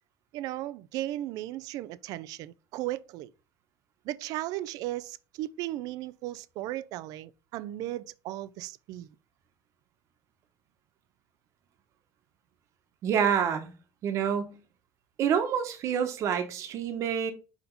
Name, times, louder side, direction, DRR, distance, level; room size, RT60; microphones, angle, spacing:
voice 1, 0.3-3.3 4.1-9.1, right 15 dB, 70° right, 0.4 m, -36 dB
voice 2, 13.0-13.7 14.0-14.6 15.2-17.3, right 8 dB, 50° right, 1.1 m, -27 dB
5.2 x 4.9 x 5.2 m
cardioid pair, 160°, 7 cm